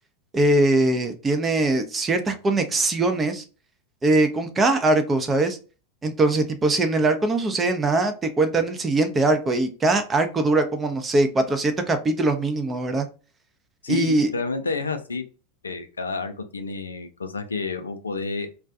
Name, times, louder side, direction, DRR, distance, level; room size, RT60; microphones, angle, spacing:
voice 1, 0.3-3.4 4.0-5.6 6.0-13.1 13.9-14.3, right 2 dB, 20° right, 7 dB, 0.5 m, -21 dB
voice 2, 13.8-15.2 15.6-18.5, left 4 dB, 85° left, 7 dB, 0.4 m, -29 dB
2.3 x 2.2 x 2.6 m, 0.35 s
figure-of-eight pair, 90°, 0 cm